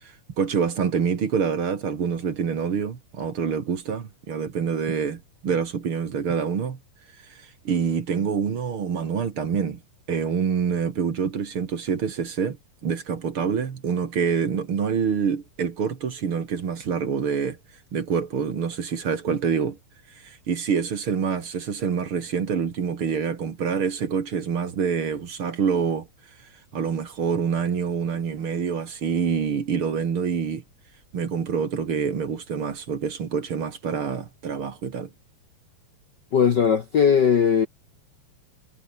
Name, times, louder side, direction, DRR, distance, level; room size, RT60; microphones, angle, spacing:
voice 1, 0.0-6.8 7.3-9.8 10.1-17.6 17.9-19.8 20.2-26.1 26.7-30.6 31.1-35.1, right 6 dB, 50° right, 2.6 m, -26 dB
voice 2, 36.3-37.7, left 7 dB, 50° left, 1.4 m, -19 dB
omnidirectional pair, 3.3 m